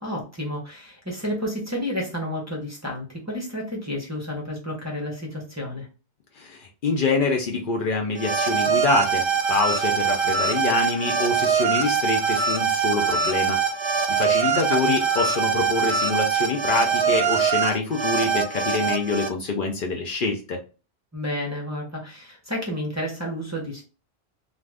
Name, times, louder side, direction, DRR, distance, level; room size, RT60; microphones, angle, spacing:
voice 1, 0.0-5.9 14.7-14.9 21.1-23.8, left 1 dB, 20° right, -2 dB, 0.7 m, -31 dB
voice 2, 6.4-13.7 14.1-20.6, left 3 dB, 60° left, 2 dB, 0.7 m, -25 dB
sound 1, 8.2-19.3, right 6 dB, 50° right, 0.3 m, -23 dB
2.5 x 2.4 x 3.2 m, 0.32 s
omnidirectional pair, 1.0 m